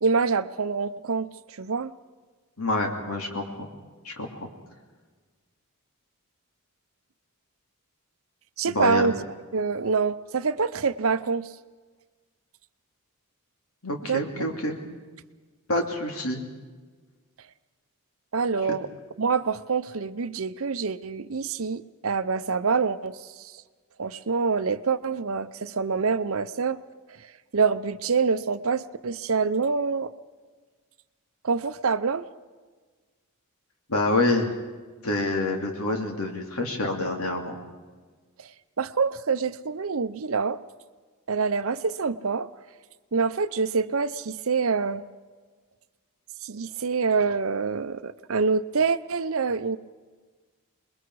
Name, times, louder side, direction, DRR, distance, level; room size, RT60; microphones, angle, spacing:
voice 1, 0.0-1.9 8.6-9.2 9.5-11.5 14.0-14.5 18.3-18.9 19.2-23.5 24.0-26.8 27.5-30.1 31.4-32.2 38.4-38.5 38.8-40.6 41.3-42.5 43.1-45.0 46.4-49.8, right 5 dB, 65° right, 13 dB, 0.7 m, -26 dB
voice 2, 2.6-3.7 4.0-4.5 8.6-9.1 13.8-14.8 15.7-16.4 18.6-18.8 33.9-34.5 35.0-37.6, left 2 dB, 75° left, 2 dB, 2.9 m, -27 dB
27.5 x 21.5 x 4.8 m, 1.4 s
head